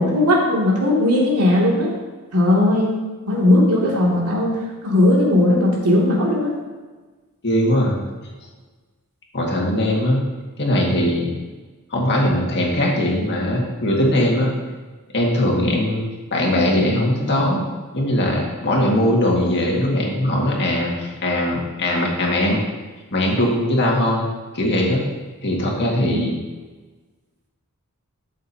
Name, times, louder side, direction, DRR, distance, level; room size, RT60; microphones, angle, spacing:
voice 1, 0.0-1.9 2.3-2.9 3.3-6.5 26.1-26.2, left 1 dB, 85° right, -4 dB, 2.6 m, -17 dB
voice 2, 7.4-8.0 9.3-10.2 10.6-11.3 11.9-14.5 15.1-16.0 16.3-17.6 17.9-22.6 23.1-24.3 24.5-25.0 25.4-26.3, left 1 dB, 50° left, -2 dB, 2.1 m, -20 dB
12.5 x 7.5 x 2.9 m, 1.3 s
head